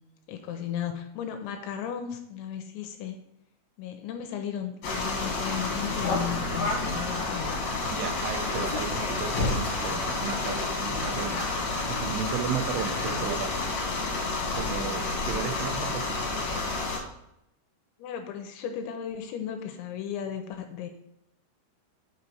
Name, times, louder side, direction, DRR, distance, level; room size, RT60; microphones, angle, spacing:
voice 1, 0.3-3.2 3.8-7.6 13.2-13.3 18.0-20.9, left 9 dB, 80° left, 6 dB, 2.9 m, -35 dB
sound 1, 4.8-17.0, left 3 dB, 55° left, 2.2 m, -29 dB
voice 2, 7.9-13.7 14.5-16.4, right 8 dB, 85° right, 6 dB, 3.2 m, -35 dB
8.2 x 5.5 x 4.6 m, 0.82 s
omnidirectional pair, 5.7 m